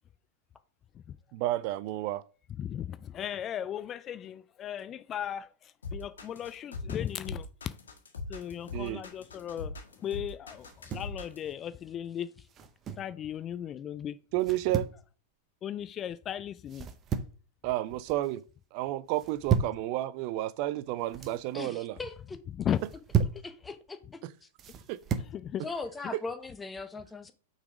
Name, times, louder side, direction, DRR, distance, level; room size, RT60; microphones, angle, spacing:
voice 1, 1.3-2.2 8.7-9.0 14.3-14.9 17.6-18.4 18.7-22.0 24.2-24.3 24.9-25.0, right 15 dB, 50° right, 0.4 m, -31 dB
voice 2, 2.6-7.5 8.3-12.3 13.0-14.2 15.6-16.9 22.6-22.8 25.3-25.6 26.0-26.1, left 10 dB, 30° left, 0.4 m, -36 dB
sound 1, 5.8-11.5, left 3 dB, 85° left, 1.6 m, -41 dB
sound 2, 10.6-11.2 12.5-13.1 14.4-15.0 16.7-17.4 17.8-18.3 19.1-19.8 20.9-21.4 22.7-23.5 24.6-25.3, right 7 dB, 30° right, 0.8 m, -32 dB
voice 3, 21.5-22.4 23.4-24.5 25.6-27.3, left 3 dB, 10° left, 0.9 m, -40 dB
5.9 x 4.0 x 4.9 m
hypercardioid pair, 105°, 0 cm